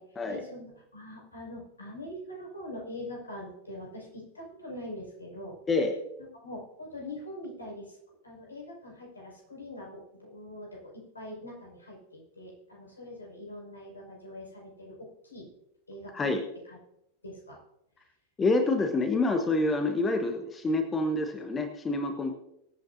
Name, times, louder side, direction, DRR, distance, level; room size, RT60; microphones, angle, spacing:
voice 1, 0.0-5.6 6.2-8.0 8.2-15.5 15.9-16.3 16.7-16.8 17.2-17.6, left 1 dB, 80° left, -3 dB, 5.9 m, -43 dB
voice 2, 18.4-22.3, left 2 dB, 20° left, 6 dB, 1.3 m, -27 dB
24.0 x 9.1 x 2.8 m, 0.81 s
figure-of-eight pair, 90°, 0 cm